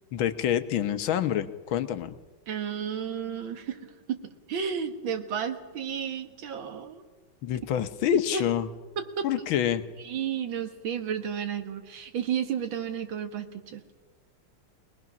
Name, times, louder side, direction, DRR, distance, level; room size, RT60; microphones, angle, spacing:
voice 1, 0.1-2.2 7.4-8.7 9.2-9.8, left 10 dB, 85° left, 11 dB, 1.7 m, -27 dB
voice 2, 2.5-7.1 8.3-8.4 9.0-9.5 10.1-13.8, right 8 dB, 80° right, 7 dB, 2.1 m, -32 dB
22.5 x 19.5 x 6.1 m, 1.3 s
omnidirectional pair, 2.1 m